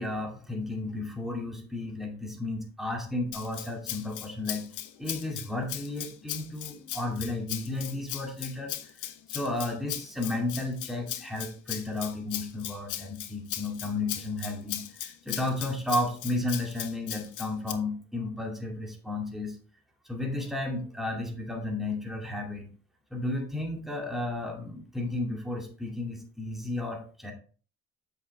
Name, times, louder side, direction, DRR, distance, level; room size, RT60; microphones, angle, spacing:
voice 1, 0.0-4.6 5.0-19.6 20.0-22.7 23.1-27.3, left 2 dB, ahead, 1 dB, 2.3 m, -33 dB
Rattle (instrument), 3.3-17.7, left 12 dB, 85° left, 0.9 m, -38 dB
7.9 x 5.7 x 3.4 m, 0.40 s
cardioid pair, 90°, 30 cm